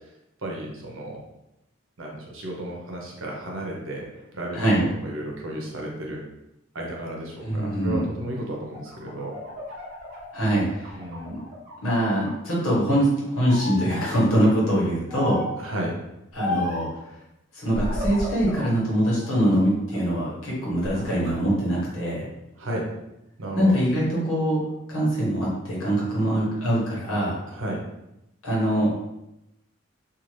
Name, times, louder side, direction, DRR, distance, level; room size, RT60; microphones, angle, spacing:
voice 1, 0.4-1.2 2.0-4.1 4.3-4.6 4.9-6.2 6.7-9.4 11.0-11.4 15.6-16.0 22.6-22.9 23.4-23.7 27.5-27.8, right 1 dB, 70° right, -1 dB, 0.7 m, -33 dB
voice 2, 7.4-8.0 10.3-10.9 11.3-11.4 11.8-15.4 16.3-16.9 17.5-22.3 23.5-24.6 24.9-27.3 28.4-28.9, equal, 85° left, -5 dB, 1.2 m, -23 dB
sound 1, 8.6-11.8 12.2-13.1 13.5-14.1 15.1-15.6 16.4-16.9 17.7-18.7 19.2-20.2 20.6-21.3, left 1 dB, 40° right, 0.8 m, -33 dB
2.6 x 2.5 x 3.1 m, 0.88 s
head